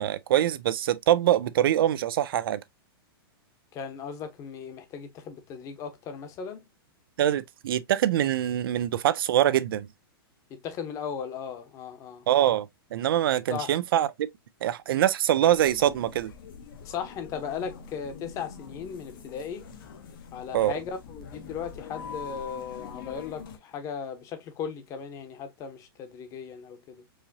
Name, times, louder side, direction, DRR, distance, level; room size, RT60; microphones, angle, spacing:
voice 1, 0.0-2.6 7.2-9.9 12.3-14.3 14.6-16.3 20.5-20.7, right 12 dB, 65° right, 0.4 m, -24 dB
voice 2, 3.7-6.6 10.6-12.2 13.5-13.7 16.8-19.6 20.3-27.0, left 7 dB, 25° left, 0.9 m, -37 dB
sound 1, 15.5-23.6, left 6 dB, 60° left, 1.0 m, -44 dB
4.8 x 2.8 x 2.6 m
hypercardioid pair, 150°, 13 cm